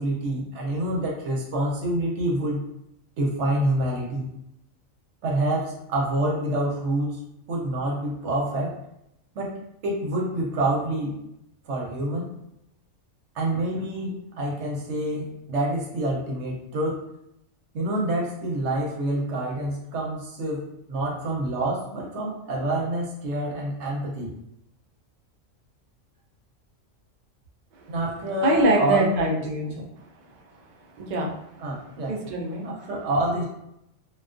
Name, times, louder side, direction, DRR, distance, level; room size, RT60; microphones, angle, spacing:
voice 1, 0.0-2.6 3.2-4.3 5.2-7.2 7.5-8.7 9.4-9.5 9.8-11.1 11.7-12.3 13.3-17.0 17.7-24.3 27.9-29.2 29.8-29.9 31.6-32.2 32.6-33.4, right 1 dB, 65° right, -2 dB, 0.9 m, -27 dB
voice 2, 28.4-29.8 31.0-31.3 32.1-32.7, right 2 dB, 85° right, -1 dB, 0.4 m, -23 dB
2.3 x 2.2 x 2.4 m, 0.80 s
omnidirectional pair, 1.4 m